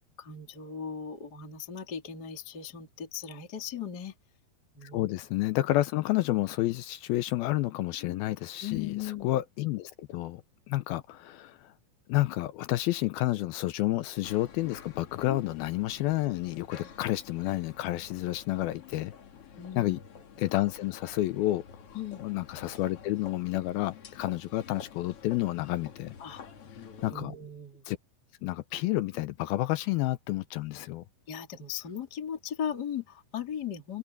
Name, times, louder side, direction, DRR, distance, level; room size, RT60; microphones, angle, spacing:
voice 1, 0.2-4.1 4.7-5.1 8.0-8.2 8.6-9.3 15.3-15.4 16.8-16.9 19.6-20.0 21.9-22.2 26.2-26.4 27.1-27.8 31.3-34.0, left 8 dB, 25° left, 3.1 m, -37 dB
voice 2, 4.8-8.9 9.2-10.4 10.7-11.7 12.1-19.1 19.8-20.0 20.4-21.6 22.2-26.2 27.0-27.3 27.9-28.0 28.4-31.0, left 16 dB, 80° left, 2.3 m, -30 dB
sound 1, 14.2-27.1, left 7 dB, 50° left, 1.9 m, -49 dB
open air
omnidirectional pair, 4.9 m